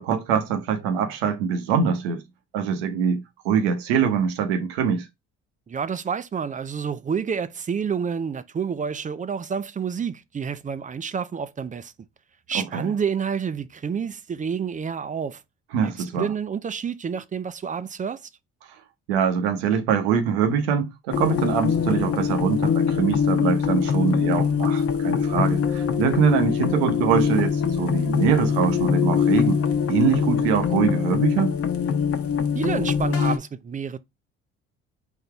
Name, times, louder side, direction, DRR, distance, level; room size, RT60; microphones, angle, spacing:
voice 1, 0.0-2.2 2.5-5.1 12.5-12.9 15.7-16.3 19.1-29.6 29.9-31.5, right 6 dB, 85° right, 0.9 m, -23 dB
voice 2, 5.7-11.9 12.5-15.4 15.8-18.3 32.5-34.0, right 6 dB, 25° right, 0.5 m, -29 dB
sound 1, 21.1-33.4, left 7 dB, 45° left, 1.0 m, -23 dB
4.0 x 2.7 x 4.4 m
hypercardioid pair, 60°, 31 cm